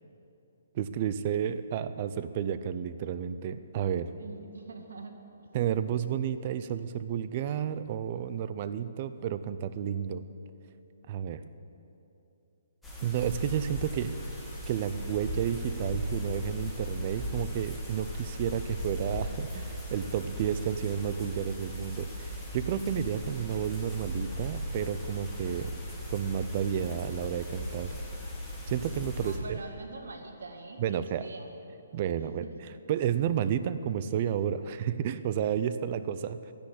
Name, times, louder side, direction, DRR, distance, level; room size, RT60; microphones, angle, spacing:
voice 1, 0.7-4.1 5.5-10.2 11.1-11.4 13.0-14.1 14.7-25.7 26.1-27.9 28.7-29.6 30.8-31.2 31.9-32.5 32.9-36.5, right 9 dB, 30° right, 13 dB, 0.5 m, -31 dB
voice 2, 4.2-5.2 29.2-31.5 32.2-32.7, right 3 dB, 90° right, 5 dB, 1.8 m, -44 dB
sound 1, 12.8-29.4, equal, ahead, 1.8 m, -37 dB
12.0 x 10.5 x 9.9 m, 2.8 s
hypercardioid pair, 175°, 0 cm